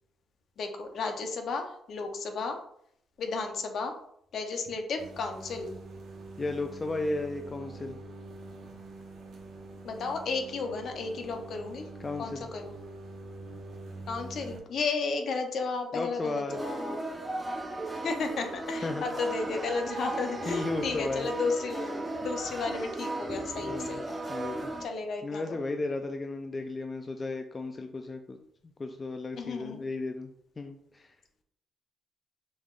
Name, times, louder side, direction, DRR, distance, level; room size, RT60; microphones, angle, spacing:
voice 1, 0.6-2.6 3.2-4.0 4.3-5.7 9.8-11.8 12.2-12.7 14.1-17.1 18.0-24.0 24.8-25.6 29.4-29.9, left 4 dB, 60° left, 5 dB, 0.7 m, -33 dB
sound 1, 5.0-14.6, right 2 dB, 70° right, 1.1 m, -45 dB
voice 2, 6.4-8.0 12.0-12.5 15.9-16.6 18.7-19.1 20.5-21.3 23.6-24.0 24.3-24.7 25.2-28.4 28.8-30.3 30.6-31.1, left 2 dB, 30° left, 5 dB, 0.4 m, -34 dB
sound 2, 16.5-24.9, right 2 dB, 20° right, 0.7 m, -36 dB
5.2 x 3.5 x 2.4 m, 0.69 s
cardioid pair, 90°, 0 cm